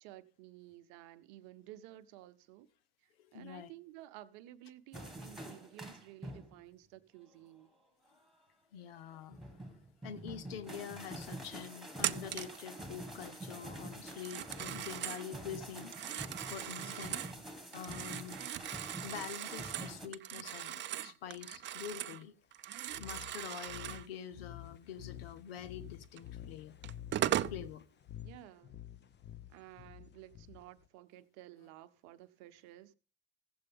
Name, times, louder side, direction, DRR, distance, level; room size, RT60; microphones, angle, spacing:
voice 1, 0.0-2.7 3.0-7.7 16.8-17.1 23.4-23.8 28.2-28.8 29.5-33.0, right 14 dB, 70° right, 0.8 m, -54 dB
voice 2, 3.2-3.7 8.7-9.7 10.0-17.2 17.7-22.3 22.9-26.8 27.5-27.9, left 8 dB, 90° left, 0.8 m, -46 dB
sound 1, 4.9-6.6 7.2-7.5 9.0-20.1, right 1 dB, ahead, 2.0 m, -47 dB
Telephone, 12.0-12.6 14.1-15.3 15.8-17.4 17.7-22.2 22.5-24.1 26.2-26.3 26.8-27.6, right 12 dB, 40° right, 0.5 m, -39 dB
sound 2, 22.9-30.9, left 12 dB, 35° left, 0.8 m, -50 dB
15.5 x 7.8 x 3.6 m
hypercardioid pair, 75°, 29 cm